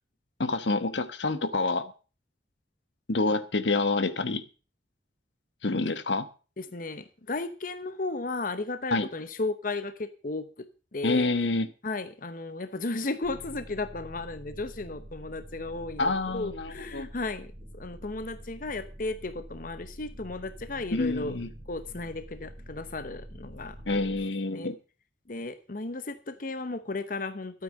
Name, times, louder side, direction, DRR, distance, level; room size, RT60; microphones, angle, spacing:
voice 1, 0.4-1.9 3.1-4.4 5.6-6.3 8.9-9.1 11.0-11.7 16.0-17.1 20.9-21.5 23.9-24.8, left 3 dB, 80° left, 12 dB, 1.2 m, -27 dB
voice 2, 6.6-11.3 11.8-21.4 21.7-24.7 25.3-27.6, left 3 dB, 50° left, 11 dB, 0.9 m, -35 dB
sound 1, 13.2-24.2, equal, 40° right, 1.6 m, -46 dB
12.5 x 9.0 x 6.4 m, 0.35 s
head